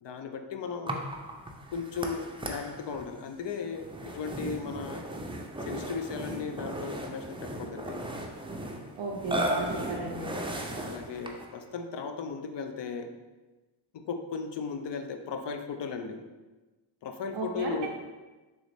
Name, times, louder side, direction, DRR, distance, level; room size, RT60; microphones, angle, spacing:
voice 1, 0.0-1.1 1.7-5.1 5.7-8.0 10.8-13.1 13.9-16.2 17.0-17.9, left 5 dB, 60° left, 7 dB, 0.5 m, -36 dB
Burping eructation, 0.9-11.6, right 1 dB, 10° right, 0.4 m, -36 dB
voice 2, 9.0-10.4 17.3-17.9, right 3 dB, 85° right, -4 dB, 0.6 m, -34 dB
3.8 x 3.0 x 3.3 m, 1.2 s
cardioid pair, 45°, 49 cm